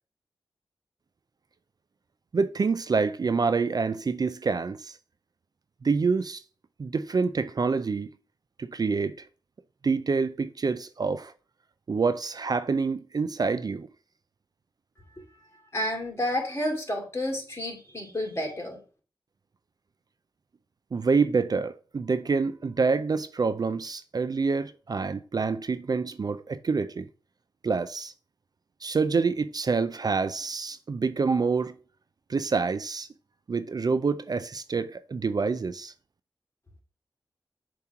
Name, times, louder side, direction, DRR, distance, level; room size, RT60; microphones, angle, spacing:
voice 1, 2.3-5.0 5.8-6.4 6.8-8.1 8.6-9.3 9.8-11.3 11.9-13.9 20.9-27.1 27.6-28.1 28.8-31.8 32.3-33.1 33.5-35.9, right 4 dB, 50° right, 0.4 m, -27 dB
voice 2, 15.7-18.8, left 1 dB, 30° left, 2.5 m, -30 dB
7.0 x 3.0 x 5.7 m
cardioid pair, 50°, 9 cm